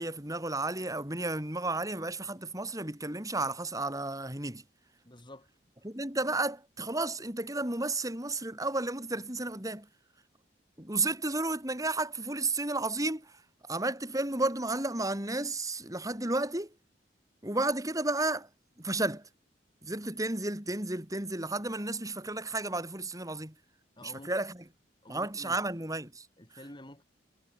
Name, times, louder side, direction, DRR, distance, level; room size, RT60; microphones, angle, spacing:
voice 1, 0.0-4.6 5.8-9.9 10.8-13.4 13.7-16.7 17.4-18.5 18.8-19.3 19.8-23.6 24.0-24.6 25.1-26.3, right 2 dB, 20° right, 5.8 m, -32 dB
voice 2, 5.0-5.5 24.0-24.3 25.0-25.6 26.4-27.0, left 1 dB, 25° left, 5.1 m, -49 dB
head